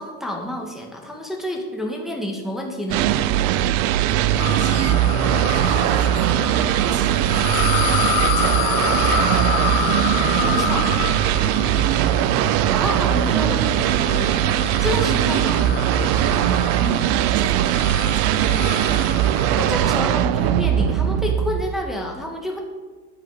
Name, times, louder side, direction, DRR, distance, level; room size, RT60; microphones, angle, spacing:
voice 1, 0.0-3.1 10.4-10.9 12.7-13.6 14.0-14.3 14.8-15.7 16.8-17.1 19.6-22.6, left 1 dB, ahead, 0 dB, 1.6 m, -28 dB
sound 1, 2.9-21.9, right 11 dB, 75° right, 0.6 m, -20 dB
sound 2, 4.4-20.0, left 9 dB, 60° left, 1.1 m, -28 dB
voice 2, 4.5-5.0 5.5-6.4 6.7-8.9 13.1-13.2 14.8-15.3 16.7-16.8 17.3-18.4, right 7 dB, 40° right, 10 dB, 1.1 m, -34 dB
9.8 x 5.9 x 6.4 m, 1.4 s
supercardioid pair, 105°, 36 cm